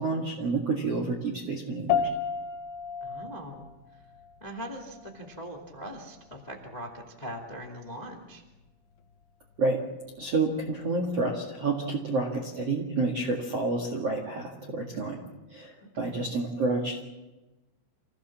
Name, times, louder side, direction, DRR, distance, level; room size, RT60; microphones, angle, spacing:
voice 1, 0.0-2.1 9.6-9.8 10.2-15.2 15.5-17.1, right 3 dB, 65° right, 1 dB, 1.5 m, -29 dB
sound 1, 1.9-11.5, left 7 dB, 85° left, 2.1 m, -36 dB
voice 2, 3.0-4.0 4.4-8.4 16.0-16.3, equal, 35° left, 2 dB, 0.6 m, -41 dB
27.0 x 16.5 x 7.3 m, 1.1 s
omnidirectional pair, 6.0 m